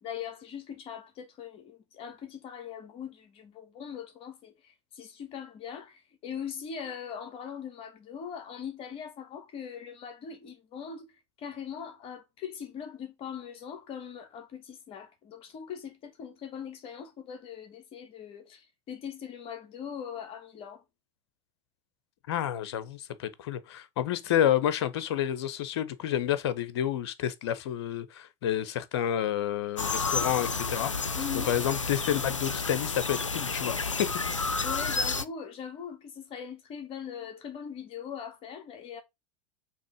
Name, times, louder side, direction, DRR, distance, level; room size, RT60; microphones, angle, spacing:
voice 1, 0.0-11.1 11.4-20.8 31.2-31.6 34.6-39.0, left 7 dB, 35° left, 1.4 m, -41 dB
voice 2, 22.3-30.9 31.5-33.8, left 11 dB, 60° left, 0.8 m, -29 dB
sound 1, 29.8-35.2, left 4 dB, 90° left, 0.5 m, -31 dB
6.3 x 3.1 x 5.0 m
figure-of-eight pair, 85°, 16 cm